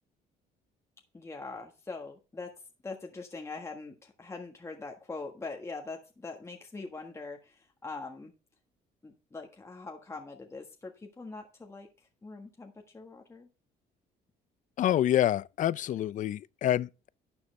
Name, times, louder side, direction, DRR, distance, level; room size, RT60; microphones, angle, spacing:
voice 1, 1.1-2.5 2.8-8.3 9.0-11.9 12.2-13.5, left 3 dB, 15° left, 1.5 m, -42 dB
voice 2, 14.8-17.1, left 11 dB, 50° left, 0.5 m, -27 dB
11.5 x 7.1 x 3.3 m
cardioid pair, 110°, 17 cm